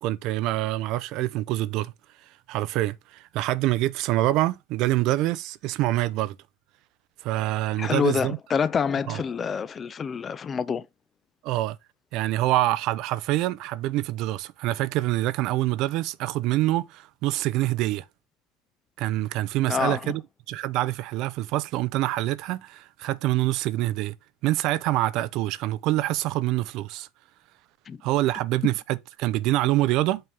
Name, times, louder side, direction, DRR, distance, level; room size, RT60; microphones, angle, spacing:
voice 1, 0.0-1.9 2.5-6.4 7.2-8.4 9.1-9.2 11.4-11.8 12.1-18.1 19.0-20.2 20.5-24.1 24.4-27.1 28.0-30.2, right 16 dB, 60° right, 0.5 m, -25 dB
voice 2, 7.8-10.9 19.7-20.2 27.9-28.0, left 6 dB, 30° left, 0.4 m, -27 dB
5.6 x 3.5 x 5.3 m
supercardioid pair, 115°, 0 cm